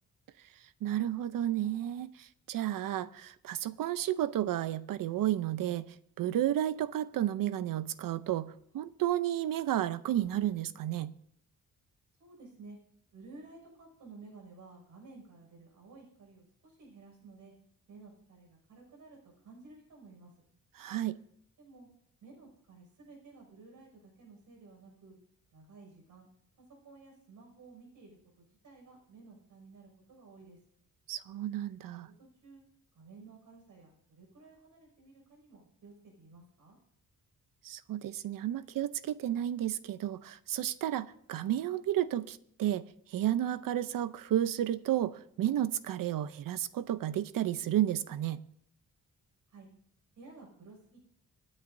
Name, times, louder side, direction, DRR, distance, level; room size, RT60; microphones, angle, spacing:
voice 1, 0.8-11.1 20.8-21.2 31.1-32.1 37.6-42.8 43.1-48.4, right 12 dB, 90° right, 0.7 m, -32 dB
voice 2, 12.2-12.8 13.1-17.5 17.9-20.3 21.6-21.9 22.2-25.2 25.5-26.3 26.6-30.6 31.9-32.6 32.9-36.8 49.5-49.7 50.2-51.0, right 3 dB, 70° right, 6.2 m, -54 dB
26.0 x 9.9 x 2.7 m
wide cardioid pair, 170°, 33 cm